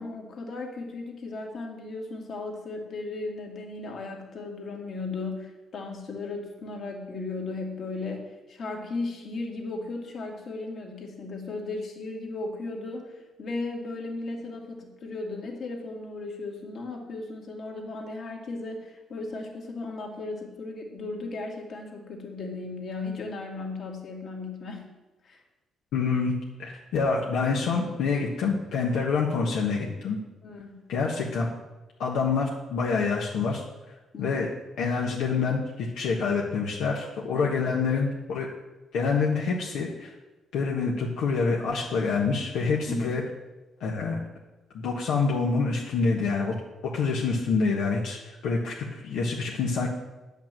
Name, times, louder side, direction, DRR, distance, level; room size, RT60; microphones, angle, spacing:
voice 1, 0.0-24.9 25.2-25.4 30.4-30.8 34.1-34.4 42.9-43.2, left 3 dB, 60° left, 0 dB, 2.3 m, -36 dB
voice 2, 25.9-30.2 30.9-31.5 32.0-33.6 34.2-34.5 34.8-38.5 38.9-40.1 40.5-43.2 43.8-44.3 44.7-46.5 46.9-49.9, left 4 dB, 85° left, -2 dB, 1.3 m, -26 dB
9.1 x 5.8 x 7.5 m, 1.1 s
cardioid pair, 90°, 0 cm